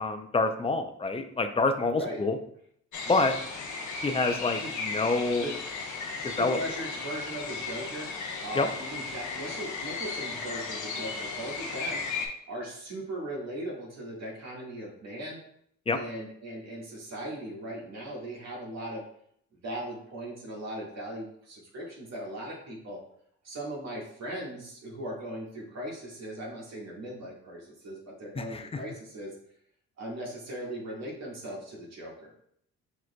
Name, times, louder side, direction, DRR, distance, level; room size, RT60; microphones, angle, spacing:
voice 1, 0.0-2.4 3.1-3.3 4.0-5.4 6.2-6.6 8.6-8.7 15.9-16.0 28.4-28.6, left 3 dB, 20° left, 7 dB, 0.4 m, -27 dB
sound 1, 2.9-12.3, left 4 dB, 75° left, 0.8 m, -35 dB
voice 2, 6.2-8.1 8.4-12.2 12.5-15.4 15.9-19.1 19.6-23.0 23.4-29.3 30.0-32.3, right 1 dB, 60° right, -4 dB, 1.5 m, -38 dB
6.1 x 3.1 x 2.2 m, 0.67 s
cardioid pair, 90°, 30 cm